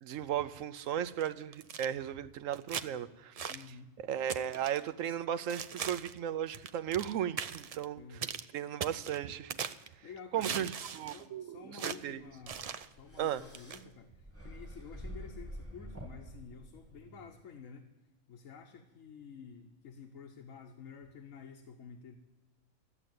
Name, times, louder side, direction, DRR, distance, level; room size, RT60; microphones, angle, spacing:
voice 1, 0.0-3.5 4.0-8.3 8.5-9.5 10.3-12.2 13.2-13.4, right 10 dB, 90° right, 14 dB, 1.0 m, -36 dB
sound 1, 1.2-1.9 2.5-2.9 3.4-3.7 4.3-4.8 5.5-6.2 6.5-7.1 7.4-7.8 8.2-8.5 8.8-9.9 10.4-11.2 11.8-12.0 12.5-12.9 13.5-13.8, right 7 dB, 70° right, 0.3 m, -39 dB
voice 2, 3.5-3.9 8.0-8.4 10.0-10.7 10.9-17.9 18.3-22.2, left 6 dB, 85° left, 3 dB, 1.3 m, -50 dB
sound 2, 12.1-17.3, equal, 10° right, 1.6 m, -48 dB
14.0 x 8.1 x 9.3 m, 1.1 s
omnidirectional pair, 1.3 m